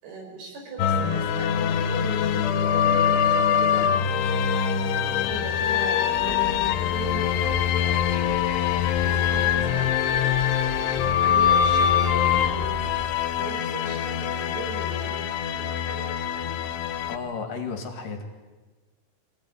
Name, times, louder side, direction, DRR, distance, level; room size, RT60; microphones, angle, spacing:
voice 1, 0.0-3.9 4.9-8.5 9.0-12.8 13.3-16.3, right 4 dB, 75° right, 1 dB, 7.0 m, -39 dB
sound 1, 0.8-17.2, left 8 dB, 85° left, 3.2 m, -23 dB
sound 2, 6.1-13.1, right 2 dB, 30° right, 0.9 m, -39 dB
voice 2, 17.1-18.2, left 5 dB, 60° left, 5 dB, 3.6 m, -33 dB
24.0 x 17.5 x 9.8 m, 1.3 s
omnidirectional pair, 4.6 m